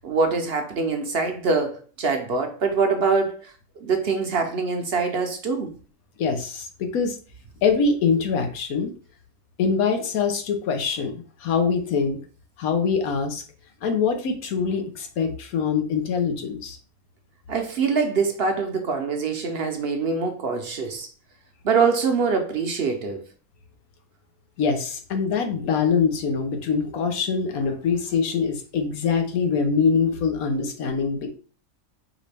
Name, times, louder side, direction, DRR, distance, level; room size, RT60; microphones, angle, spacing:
voice 1, 0.0-3.5 3.8-5.7 17.5-21.1 21.6-23.2, right 4 dB, 55° right, 0.8 m, -24 dB
voice 2, 6.2-7.2 7.6-8.9 9.6-12.2 12.6-13.4 13.8-16.8 24.6-31.3, left 5 dB, 90° left, 1.3 m, -24 dB
5.0 x 3.1 x 3.3 m
omnidirectional pair, 1.5 m